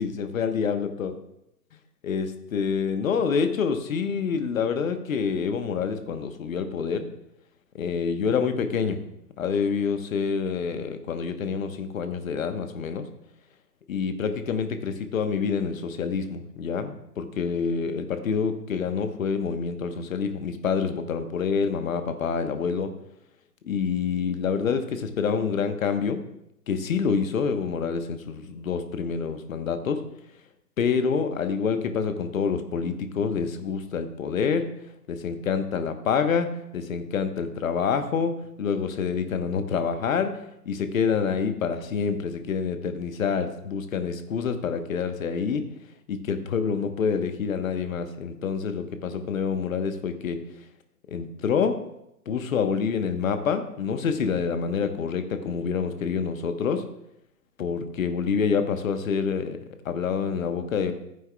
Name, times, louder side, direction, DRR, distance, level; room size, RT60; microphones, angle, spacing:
voice 1, 0.0-1.1 2.0-7.1 7.7-9.0 9.4-13.0 13.9-22.9 23.6-26.2 26.7-30.0 30.8-34.7 35.1-45.6 46.1-50.4 51.1-51.8 52.3-56.8 57.6-59.6 59.8-60.9, left 6 dB, 55° left, 8 dB, 1.1 m, -27 dB
14.5 x 9.2 x 2.3 m, 0.81 s
figure-of-eight pair, 130°, 49 cm